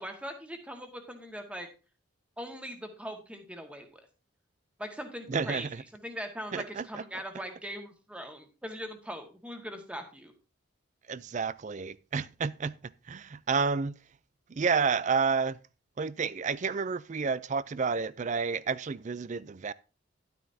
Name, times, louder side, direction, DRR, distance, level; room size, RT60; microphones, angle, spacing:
voice 1, 0.0-1.7 2.4-4.0 4.8-5.7 6.0-10.3, equal, 5° right, 1.5 m, -40 dB
voice 2, 5.3-5.8 6.5-7.2 11.1-12.7 13.1-14.0 14.5-15.6 16.0-19.7, right 5 dB, 35° right, 0.4 m, -30 dB
11.5 x 9.1 x 2.7 m
head